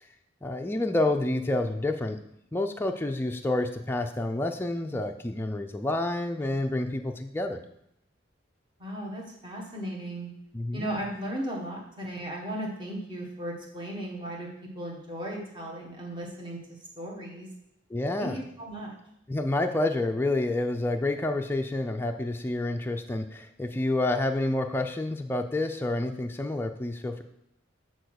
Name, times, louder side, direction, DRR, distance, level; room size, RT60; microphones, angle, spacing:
voice 1, 0.4-2.2 2.5-7.6 10.5-10.9 17.9-18.4 19.3-27.2, left 2 dB, 10° left, 4 dB, 0.4 m, -28 dB
voice 2, 8.8-10.3 10.7-16.6 17.0-17.5 18.2-19.0, right 1 dB, 25° right, -1 dB, 1.4 m, -36 dB
7.0 x 4.2 x 6.3 m, 0.77 s
head